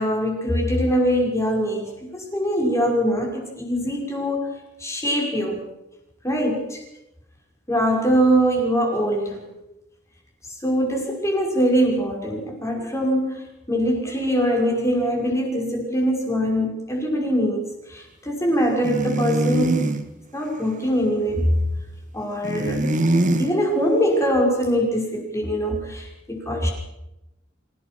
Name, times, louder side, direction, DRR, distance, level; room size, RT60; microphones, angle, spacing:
voice 1, 0.0-4.5 4.8-5.6 6.2-6.8 7.7-9.4 10.4-20.0 20.3-21.5 22.1-22.9 23.4-26.7, equal, 15° left, 1 dB, 5.9 m, -23 dB
sound 1, 18.8-20.0 22.4-23.5, right 1 dB, 40° right, 1.8 m, -22 dB
26.5 x 17.5 x 6.3 m, 0.92 s
head